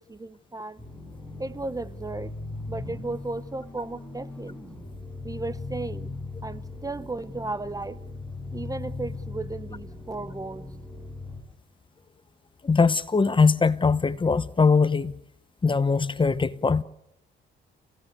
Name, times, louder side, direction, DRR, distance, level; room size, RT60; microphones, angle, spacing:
voice 1, 0.1-0.8 1.4-2.3 2.7-4.6 5.2-6.1 6.4-8.0 8.5-10.7, right 2 dB, 15° right, 0.8 m, -35 dB
sound 1, 0.8-11.4, left 3 dB, 5° left, 7.3 m, -39 dB
voice 2, 12.6-15.2 15.6-16.8, left 4 dB, 25° left, 1.0 m, -21 dB
28.5 x 17.0 x 6.8 m
cardioid pair, 90°, 20 cm